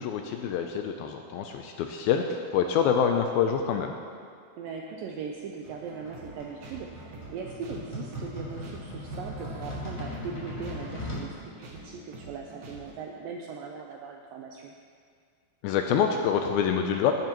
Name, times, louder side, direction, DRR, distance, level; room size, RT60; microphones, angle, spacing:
voice 1, 0.0-3.9 15.6-17.1, left 7 dB, 80° left, 4 dB, 2.2 m, -26 dB
voice 2, 4.6-14.7, right 5 dB, 85° right, 1 dB, 2.0 m, -39 dB
sound 1, 5.6-11.3, left 1 dB, 15° left, 3.3 m, -39 dB
sound 2, 5.8-12.9, right 2 dB, 55° right, 1.8 m, -46 dB
18.0 x 10.5 x 3.0 m, 2.1 s
omnidirectional pair, 4.7 m